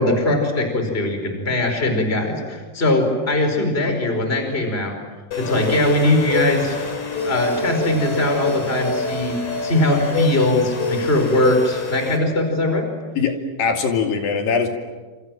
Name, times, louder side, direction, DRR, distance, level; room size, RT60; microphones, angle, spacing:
voice 1, 0.0-5.0 5.4-6.8 7.2-12.9, left 1 dB, 15° left, 5 dB, 4.9 m, -20 dB
sound 1, 5.3-12.2, left 3 dB, 55° left, 5.2 m, -26 dB
voice 2, 13.2-14.7, left 5 dB, 75° left, 4 dB, 4.4 m, -21 dB
28.0 x 28.0 x 7.6 m, 1.3 s
omnidirectional pair, 4.0 m